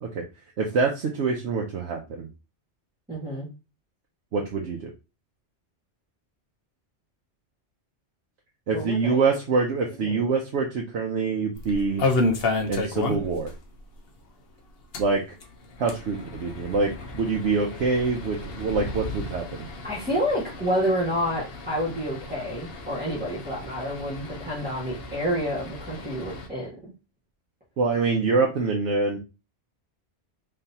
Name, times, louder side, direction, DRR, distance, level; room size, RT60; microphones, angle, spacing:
voice 1, 0.6-2.3 4.3-4.9 8.7-12.1 12.7-13.5 15.0-15.2 15.8-19.7 27.8-29.2, right 4 dB, 85° right, 0 dB, 1.0 m, -25 dB
voice 2, 3.1-3.5 8.7-9.2 10.0-10.3 19.8-26.9, equal, 10° right, -9 dB, 1.6 m, -29 dB
sound 1, 11.6-13.5 13.8-13.9 14.2-14.3 14.8-26.5, left 2 dB, 65° left, 1.0 m, -32 dB
3.8 x 3.3 x 2.8 m, 0.29 s
omnidirectional pair, 1.1 m